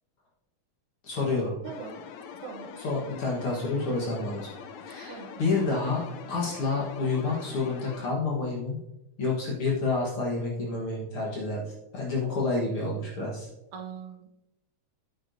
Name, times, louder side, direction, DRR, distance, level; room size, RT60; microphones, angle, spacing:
voice 1, 1.0-1.5 2.8-4.5 4.8-8.8 9.2-11.6 11.9-13.5, left 3 dB, 50° left, -4 dB, 1.9 m, -29 dB
sound 1, 1.6-8.1, left 7 dB, 75° left, 1.7 m, -44 dB
voice 2, 1.6-2.0 2.4-2.8 5.1-5.4 13.7-14.3, right 6 dB, 75° right, 3 dB, 2.2 m, -41 dB
9.6 x 8.4 x 2.7 m, 0.92 s
omnidirectional pair, 3.7 m